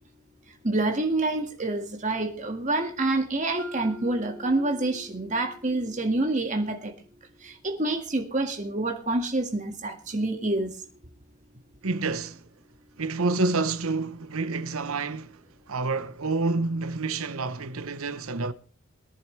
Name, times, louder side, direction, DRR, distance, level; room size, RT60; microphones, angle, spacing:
voice 1, 0.6-6.9 7.4-10.7, right 2 dB, 35° right, 1.9 m, -27 dB
Mallet percussion, 3.6-7.6, equal, 10° left, 1.4 m, -46 dB
voice 2, 11.8-12.4 13.0-15.4 15.7-18.5, right 3 dB, 80° right, 0.9 m, -28 dB
22.0 x 10.5 x 3.3 m
head